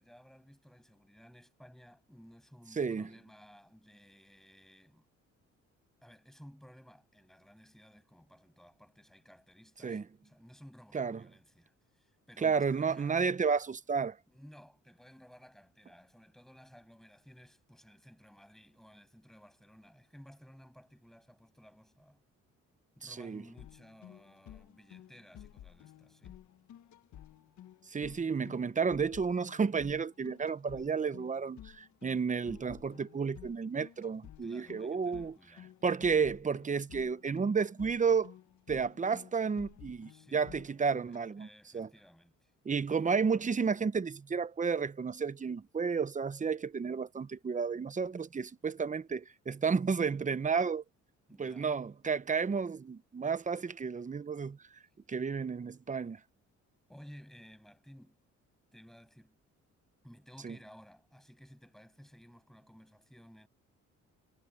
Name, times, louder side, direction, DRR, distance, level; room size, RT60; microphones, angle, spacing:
voice 1, 0.0-5.1 6.0-13.3 14.3-22.2 23.0-26.4 34.4-35.7 40.1-40.5 41.1-42.5 51.3-51.7 56.9-58.2 58.7-59.4 60.0-63.5, equal, ahead, 6.9 m, -56 dB
voice 2, 2.8-3.1 9.8-10.0 10.9-11.2 12.4-14.2 23.0-23.4 27.9-35.4 35.8-38.3 38.7-41.5 41.7-41.9 42.6-50.8 51.4-54.6 55.1-56.2 60.4-60.6, right 5 dB, 25° right, 0.9 m, -32 dB
sound 1, 23.6-41.2, left 11 dB, 70° left, 1.7 m, -53 dB
cardioid pair, 90°, 30 cm